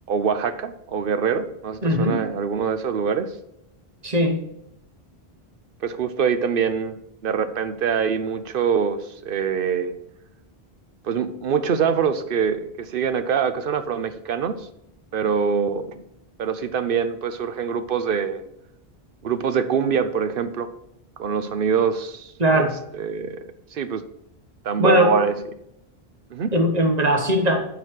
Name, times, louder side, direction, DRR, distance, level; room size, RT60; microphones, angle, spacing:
voice 1, 0.1-3.3 5.8-7.0 7.2-9.9 11.0-14.7 15.1-16.0 16.4-18.4 19.2-20.7 21.2-22.7 22.9-23.4 23.7-24.0 24.6-25.4 26.3-26.5, right 6 dB, 65° right, 11 dB, 0.9 m, -24 dB
voice 2, 1.8-2.2 4.0-4.4 22.4-22.7 24.8-25.1 26.5-27.6, equal, 40° right, 4 dB, 1.2 m, -19 dB
12.0 x 4.2 x 4.5 m, 0.79 s
omnidirectional pair, 1.0 m